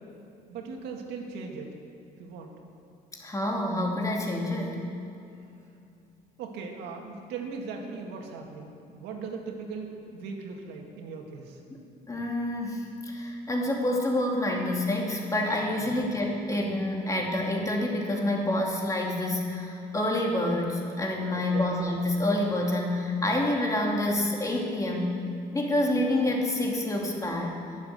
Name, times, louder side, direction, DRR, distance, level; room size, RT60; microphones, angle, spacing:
voice 1, 0.5-1.8 2.2-2.6 6.4-11.6 15.9-16.1 21.3-21.7, right 4 dB, 90° right, 2 dB, 2.0 m, -39 dB
voice 2, 3.2-4.8 11.7-25.1 25.5-27.5, left 1 dB, 20° left, -1 dB, 2.8 m, -28 dB
21.5 x 7.5 x 6.7 m, 2.6 s
cardioid pair, 110°, 17 cm